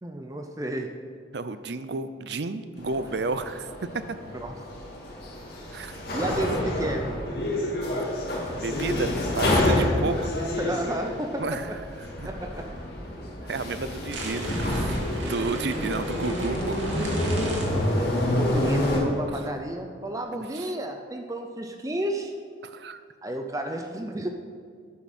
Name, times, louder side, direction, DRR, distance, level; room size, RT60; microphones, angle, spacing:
voice 1, 0.0-0.9 4.4-4.6 6.1-7.2 9.6-9.9 10.6-11.8 12.2-12.7 18.4-22.3 23.2-24.3, right 1 dB, 20° right, 4 dB, 0.5 m, -31 dB
voice 2, 1.3-3.7 4.1-4.2 5.7-6.0 6.3-6.4 8.6-10.1 11.4-11.8 12.2-12.3 13.5-16.8 19.3-19.4 20.5-20.7 22.6-23.0, right 3 dB, 65° right, 12 dB, 0.5 m, -32 dB
sound 1, 2.8-19.0, left 1 dB, 55° left, 2.3 m, -28 dB
sound 2, 14.1-18.3, right 2 dB, 90° right, 2.2 m, -39 dB
12.5 x 9.4 x 4.3 m, 2.1 s
head